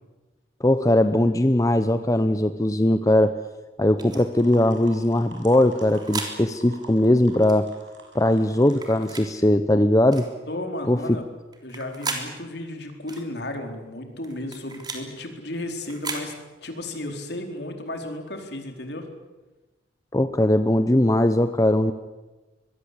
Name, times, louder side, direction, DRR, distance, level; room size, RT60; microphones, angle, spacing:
voice 1, 0.6-3.4 3.8-7.7 8.1-10.3 10.9-11.2 20.1-21.9, left 1 dB, 20° left, 10 dB, 0.8 m, -20 dB
sound 1, 4.0-4.2 5.5-6.3 7.4-7.6 8.7-9.3 10.1-10.3 11.5-12.3 13.1-13.3 14.2-15.0 15.8-16.3, right 4 dB, 20° right, 3.5 m, -34 dB
sound 2, 4.0-9.1, right 3 dB, 80° right, 6.9 m, -47 dB
voice 2, 10.5-11.2 11.6-16.3 16.6-19.1, left 1 dB, 65° left, 4 dB, 4.3 m, -34 dB
25.5 x 22.0 x 8.3 m, 1.2 s
head